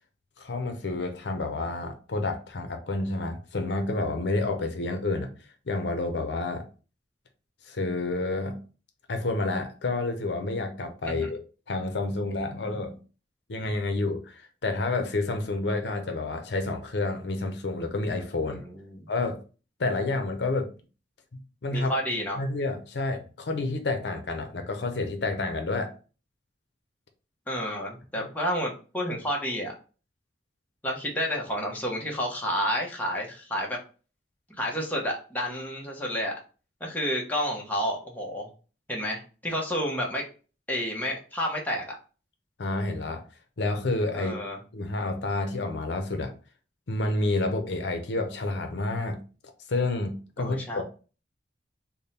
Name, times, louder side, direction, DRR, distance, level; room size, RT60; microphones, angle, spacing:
voice 1, 0.4-5.3 5.7-6.6 7.6-8.6 9.1-11.4 11.7-13.0 13.5-18.6 19.1-19.4 19.8-20.7 21.3-21.9 22.4-25.9 28.2-28.3 42.6-43.2 43.6-44.4 44.7-46.3 46.9-49.2 49.7-50.8, left 2 dB, 75° left, 0.6 m, -29 dB
voice 2, 18.4-19.1 21.7-22.4 27.5-29.7 30.8-33.8 34.5-36.3 36.8-38.5 38.9-40.2 40.7-42.0 44.1-44.6 50.4-50.8, equal, 10° left, 0.8 m, -30 dB
3.5 x 2.2 x 4.1 m
head